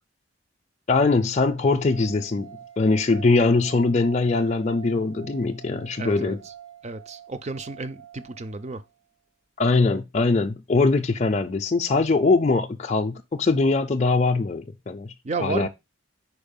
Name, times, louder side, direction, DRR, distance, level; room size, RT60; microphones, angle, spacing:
voice 1, 0.9-6.4 9.6-15.1 15.4-15.7, left 3 dB, 35° left, 0.4 m, -22 dB
sound 1, 1.8-8.9, right 9 dB, 75° right, 1.5 m, -46 dB
voice 2, 6.0-6.4 6.8-8.8 15.2-15.7, right 3 dB, 35° right, 0.5 m, -32 dB
4.8 x 4.7 x 5.2 m
head